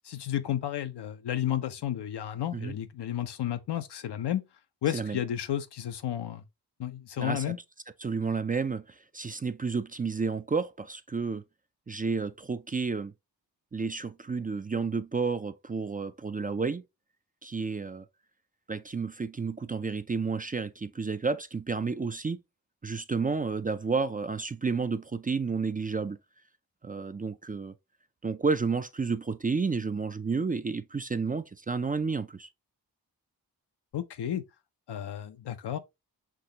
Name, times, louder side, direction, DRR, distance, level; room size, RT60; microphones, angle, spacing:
voice 1, 0.0-4.4 4.8-6.4 6.8-7.6 33.9-34.4 34.9-35.8, left 11 dB, 75° left, 0.6 m, -32 dB
voice 2, 7.2-7.5 8.0-11.4 11.9-13.1 13.7-16.8 17.4-18.1 18.7-22.4 22.8-26.2 26.8-27.7 28.2-32.5, right 4 dB, 20° right, 0.4 m, -31 dB
6.0 x 2.8 x 2.7 m
cardioid pair, 40°, 40 cm